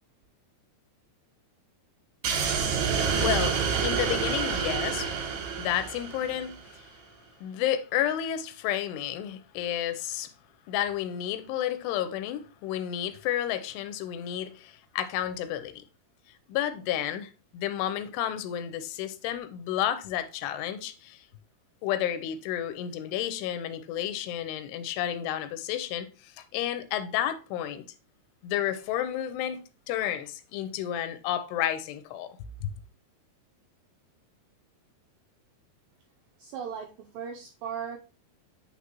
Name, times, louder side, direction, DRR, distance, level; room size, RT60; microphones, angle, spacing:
sound 1, 2.2-6.6, right 6 dB, 70° right, 2.2 m, -28 dB
voice 1, 3.2-5.1 5.6-6.9 7.4-10.3 10.7-15.8 16.5-21.2 21.8-27.8 28.4-32.3 32.6-32.7, left 11 dB, 85° left, 2.7 m, -31 dB
voice 2, 36.4-38.0, right 7 dB, 90° right, 2.0 m, -37 dB
9.5 x 3.9 x 2.9 m
omnidirectional pair, 4.7 m